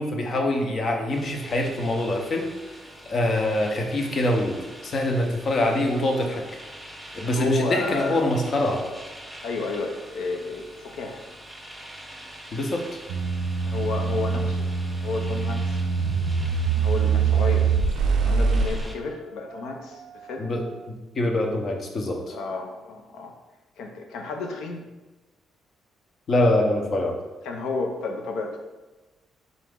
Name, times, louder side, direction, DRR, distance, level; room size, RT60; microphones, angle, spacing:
voice 1, 0.0-2.5 3.1-6.4 7.1-8.8 12.5-13.0 20.4-22.4 26.3-27.1, left 1 dB, 50° left, 2 dB, 0.7 m, -24 dB
sound 1, 1.1-18.9, equal, ahead, 0.8 m, -44 dB
voice 2, 7.2-8.3 9.4-11.2 13.6-14.7 15.0-15.8 16.8-17.7 18.0-20.5 22.3-23.4 23.8-24.9 27.4-28.6, left 3 dB, 85° left, 3 dB, 0.6 m, -31 dB
sound 2, 13.1-18.8, right 5 dB, 85° right, 0.3 m, -23 dB
3.8 x 3.0 x 3.6 m, 1.1 s
cardioid pair, 90°, 0 cm